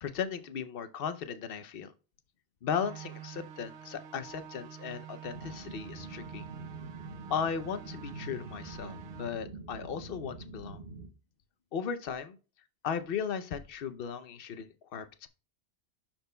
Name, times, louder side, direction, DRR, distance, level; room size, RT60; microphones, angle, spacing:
voice 1, 0.0-1.9 2.6-6.4 7.3-10.8 11.7-12.4 12.8-15.3, left 7 dB, 60° left, 10 dB, 0.9 m, -36 dB
sound 1, 2.7-9.3, right 10 dB, 90° right, 0.9 m, -48 dB
sound 2, 5.3-11.1, right 2 dB, 60° right, 1.3 m, -45 dB
12.0 x 4.4 x 2.2 m, 0.33 s
omnidirectional pair, 1.1 m